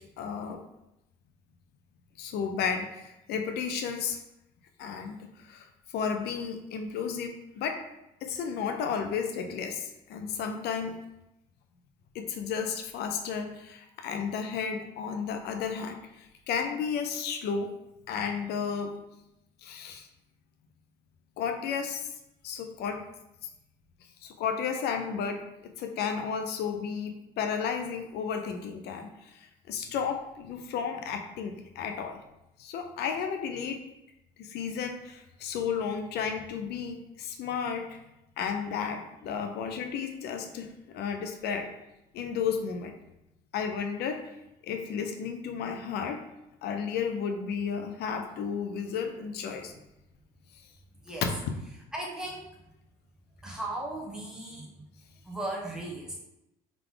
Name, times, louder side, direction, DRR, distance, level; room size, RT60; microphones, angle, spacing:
voice 1, 0.2-0.6 2.2-4.2 4.8-5.7 5.9-7.8 8.2-11.0 12.1-17.7 18.1-18.9 19.6-20.1 21.4-22.0 22.4-23.0 24.2-25.4 25.8-32.2 32.6-33.8 34.4-38.0 38.4-41.7 42.1-42.9 43.5-44.2 44.6-46.2 46.6-49.7 51.2-51.3, left 6 dB, 75° left, 5 dB, 0.6 m, -33 dB
voice 2, 51.9-52.5 53.4-54.8 55.2-56.2, right 1 dB, 5° right, -3 dB, 1.2 m, -36 dB
3.6 x 3.4 x 3.8 m, 0.88 s
cardioid pair, 110°, 17 cm